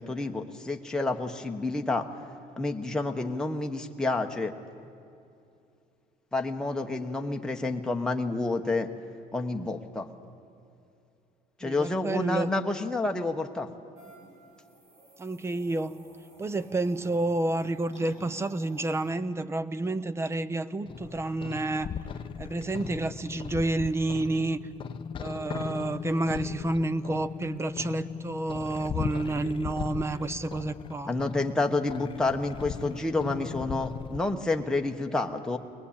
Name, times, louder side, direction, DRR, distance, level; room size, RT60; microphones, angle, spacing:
voice 1, 0.0-2.1 2.6-4.5 6.3-8.9 9.3-10.1 11.6-13.7 31.1-35.6, left 2 dB, 5° left, 2 dB, 1.0 m, -29 dB
voice 2, 11.6-12.5 15.2-16.0 16.4-21.9 22.4-24.6 25.2-31.1, right 2 dB, 15° right, 16 dB, 0.6 m, -30 dB
sound 1, 14.0-19.1, right 1 dB, 45° right, 6.8 m, -53 dB
sound 2, 20.9-34.2, left 7 dB, 35° left, 0.6 m, -38 dB
22.0 x 20.0 x 8.6 m, 2.6 s
cardioid pair, 140°, 16 cm